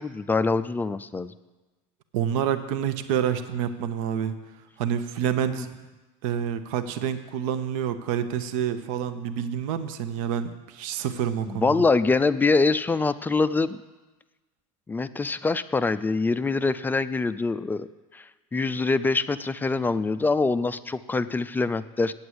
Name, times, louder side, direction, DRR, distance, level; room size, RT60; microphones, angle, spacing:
voice 1, 0.0-1.3 5.5-5.7 11.5-13.8 14.9-17.9 18.1-18.2 18.5-22.1, left 3 dB, 10° left, 13 dB, 0.3 m, -24 dB
voice 2, 2.1-4.3 4.8-5.7 6.2-11.8, right 9 dB, 65° right, 10 dB, 0.8 m, -28 dB
8.7 x 8.0 x 7.9 m, 1.2 s
supercardioid pair, 110°, 18 cm